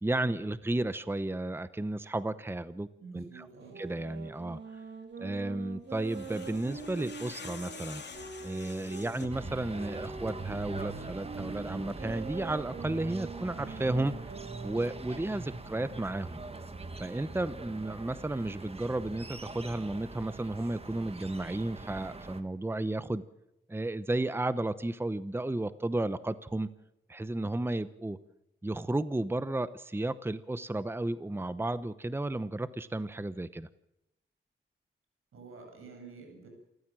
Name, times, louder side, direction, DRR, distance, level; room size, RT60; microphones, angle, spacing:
voice 1, 0.0-2.9 3.1-3.5 3.8-4.6 5.2-8.0 8.4-14.1 14.6-16.4 17.0-23.2 23.7-26.7 27.1-28.2 28.6-33.7, right 2 dB, 10° right, 14 dB, 0.9 m, -33 dB
voice 2, 3.0-3.8 35.3-36.5, right 4 dB, 90° right, 3 dB, 7.3 m, -48 dB
sound 1, 3.6-9.1 9.7-15.1, right 5 dB, 60° right, 2.5 m, -44 dB
sound 2, 5.9-9.5, left 5 dB, 55° left, 2.7 m, -46 dB
sound 3, 9.3-22.4, right 3 dB, 30° right, 1.7 m, -43 dB
27.5 x 14.5 x 7.6 m, 0.86 s
cardioid pair, 85°, 21 cm